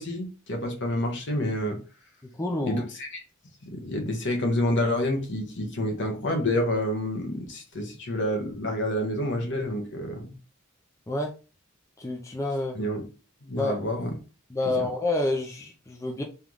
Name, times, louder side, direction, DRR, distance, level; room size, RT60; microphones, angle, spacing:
voice 1, 0.0-1.8 2.6-3.2 3.7-10.3 12.7-13.0 13.4-14.1 14.7-14.9, left 1 dB, 60° left, 3 dB, 1.2 m, -28 dB
voice 2, 2.2-2.8 11.1-11.3 12.0-12.8 13.5-13.8 14.5-16.2, left 2 dB, 15° left, 2 dB, 0.5 m, -28 dB
3.4 x 3.0 x 3.7 m, 0.33 s
head